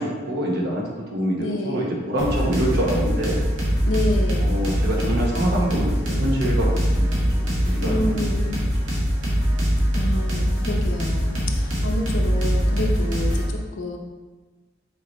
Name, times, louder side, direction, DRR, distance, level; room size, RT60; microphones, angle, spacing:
voice 1, 0.0-3.4 4.4-6.7 7.0-8.6, right 1 dB, 60° right, -2 dB, 1.2 m, -26 dB
voice 2, 1.4-1.9 3.8-4.6 7.8-8.6 9.9-14.0, left 1 dB, 80° left, 1 dB, 0.9 m, -29 dB
sound 1, 2.2-13.5, equal, 80° right, 1.9 m, -22 dB
6.9 x 4.6 x 3.2 m, 1.3 s
head